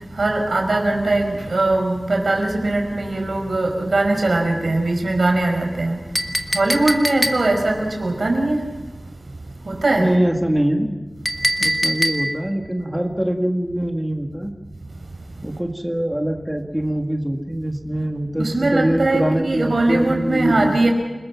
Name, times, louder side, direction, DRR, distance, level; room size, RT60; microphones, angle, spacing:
voice 1, 0.1-6.0 6.5-8.6 9.6-10.1 18.4-20.9, right 2 dB, 85° right, 2 dB, 5.3 m, -20 dB
Chink clink, 6.1-7.7 11.3-12.5, equal, 10° left, 2.1 m, -23 dB
voice 2, 10.0-11.0 11.6-14.5 15.4-20.9, right 1 dB, 10° right, 3 dB, 2.0 m, -23 dB
29.5 x 20.5 x 6.0 m, 1.2 s
wide cardioid pair, 70°, 0 cm